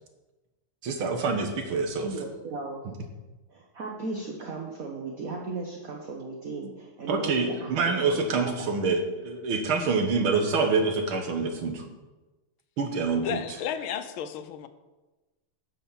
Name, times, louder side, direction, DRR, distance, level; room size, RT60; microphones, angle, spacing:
voice 1, 0.8-2.1 7.1-11.8 12.8-13.4, right 4 dB, 75° right, 4 dB, 2.1 m, -26 dB
voice 2, 2.0-2.8 3.5-7.3 7.6-8.5, right 3 dB, 45° right, 0 dB, 1.4 m, -36 dB
voice 3, 13.2-14.7, left 8 dB, 75° left, 10 dB, 1.5 m, -33 dB
10.0 x 5.7 x 7.2 m, 1.1 s
omnidirectional pair, 2.3 m